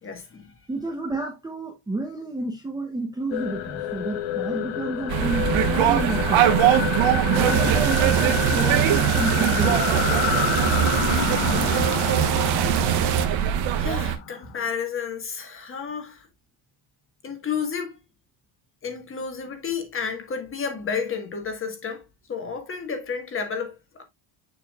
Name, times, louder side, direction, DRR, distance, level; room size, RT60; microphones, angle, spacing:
voice 1, 0.0-0.5 7.3-7.6 12.7-13.1 13.3-13.4 13.8-16.3 17.2-18.0 18.8-24.0, left 6 dB, 25° left, 1.4 m, -32 dB
voice 2, 0.7-6.6 7.3-9.9, right 2 dB, 10° right, 0.7 m, -30 dB
sound 1, 3.3-14.7, left 11 dB, 65° left, 1.1 m, -29 dB
sound 2, 5.1-14.2, right 10 dB, 65° right, 1.3 m, -23 dB
sound 3, 7.3-13.3, right 8 dB, 50° right, 1.1 m, -24 dB
6.9 x 6.9 x 2.3 m
cardioid pair, 170°, 49 cm